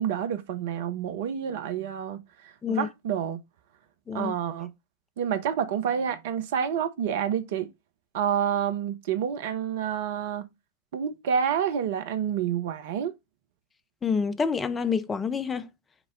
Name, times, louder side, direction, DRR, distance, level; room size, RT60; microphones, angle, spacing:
voice 1, 0.0-2.2 2.7-3.4 4.1-4.7 5.2-7.7 8.1-10.5 10.9-13.1, right 8 dB, 55° right, 0.5 m, -28 dB
voice 2, 14.0-15.7, left 5 dB, 15° left, 0.4 m, -27 dB
6.0 x 2.0 x 3.6 m
figure-of-eight pair, 90°, 0 cm